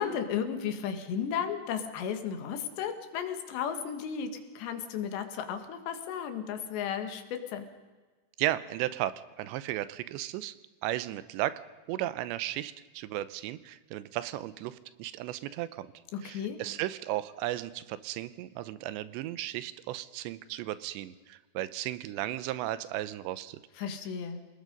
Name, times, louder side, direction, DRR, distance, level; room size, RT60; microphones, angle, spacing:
voice 1, 0.0-7.7 16.1-16.6 23.8-24.5, left 8 dB, 80° left, 7 dB, 3.9 m, -34 dB
voice 2, 8.4-10.5 10.8-15.9 16.2-23.6, right 14 dB, 90° right, 15 dB, 3.0 m, -35 dB
27.5 x 19.0 x 5.3 m, 1.3 s
omnidirectional pair, 5.0 m